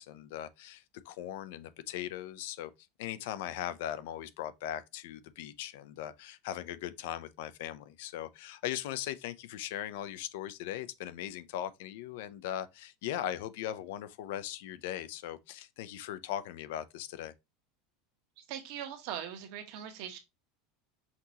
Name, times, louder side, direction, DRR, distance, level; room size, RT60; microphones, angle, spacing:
voice 1, 0.0-2.7 3.0-17.3, left 11 dB, 70° left, 0.5 m, -39 dB
voice 2, 18.4-20.2, right 9 dB, 55° right, 1.2 m, -41 dB
5.8 x 3.0 x 2.8 m
supercardioid pair, 165°, 0 cm